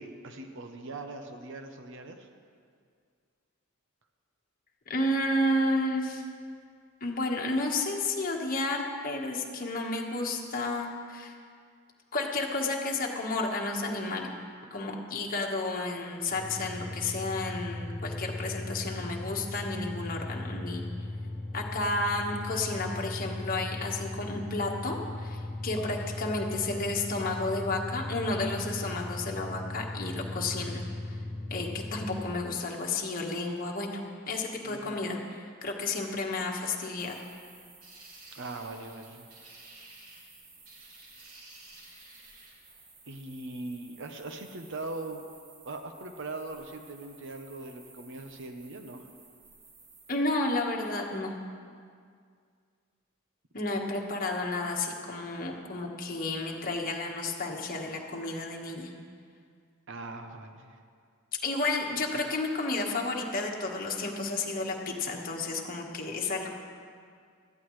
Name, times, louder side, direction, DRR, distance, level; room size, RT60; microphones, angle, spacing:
voice 1, 0.0-2.3 34.6-35.0 38.3-39.4 39.8-39.9 43.1-45.2 45.6-49.1 59.9-60.8, right 2 dB, 60° right, 6 dB, 0.9 m, -41 dB
voice 2, 4.9-6.2 7.0-11.3 12.1-14.3 14.7-20.9 21.5-30.8 31.5-35.2 35.6-37.2 50.1-51.3 53.5-58.9 61.4-66.5, left 2 dB, 45° left, 0 dB, 1.4 m, -31 dB
sound 1, 16.3-32.4, left 2 dB, 60° left, 1.3 m, -38 dB
sound 2, 37.0-50.2, right 3 dB, 85° right, 2.6 m, -54 dB
17.5 x 13.5 x 3.2 m, 2.2 s
head